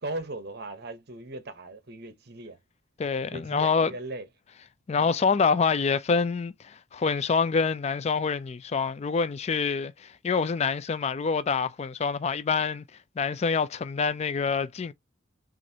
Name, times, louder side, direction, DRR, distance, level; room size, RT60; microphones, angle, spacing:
voice 1, 0.0-2.6 3.3-4.3 5.0-5.2, right 2 dB, 55° right, 0.9 m, -38 dB
voice 2, 3.0-3.9 4.9-12.8 13.2-14.9, left 5 dB, 35° left, 0.3 m, -26 dB
6.1 x 2.5 x 2.7 m
head